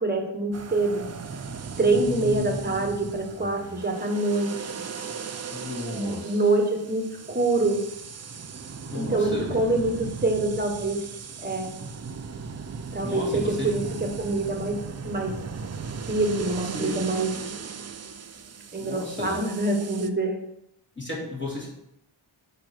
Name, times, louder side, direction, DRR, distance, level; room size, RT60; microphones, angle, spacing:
voice 1, 0.0-1.1 1.8-4.5 5.9-7.8 8.9-11.0 11.4-11.7 12.9-14.8 15.0-15.4 16.1-17.3 18.7-20.4, right 2 dB, 20° right, 3 dB, 1.3 m, -25 dB
sound 1, 0.5-20.1, right 5 dB, 35° right, 0.4 m, -37 dB
voice 2, 1.9-3.8 5.5-6.4 8.9-9.6 13.0-13.7 16.6-17.0 18.8-19.4 21.0-21.7, left 2 dB, 25° left, -5 dB, 2.4 m, -35 dB
8.8 x 3.2 x 6.0 m, 0.79 s
wide cardioid pair, 115°, 48 cm